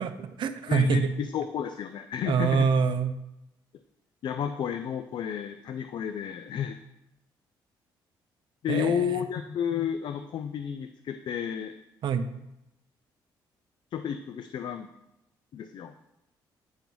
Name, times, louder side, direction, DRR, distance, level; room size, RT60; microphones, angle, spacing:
voice 1, 0.0-1.1 2.3-3.2 8.7-9.2 12.0-12.3, right 6 dB, 60° right, 10 dB, 0.5 m, -26 dB
voice 2, 0.7-2.7 4.2-6.8 8.6-11.7 13.9-14.9 15.5-15.9, left 8 dB, 60° left, 9 dB, 0.4 m, -31 dB
8.7 x 3.0 x 5.3 m, 0.90 s
cardioid pair, 80°, 9 cm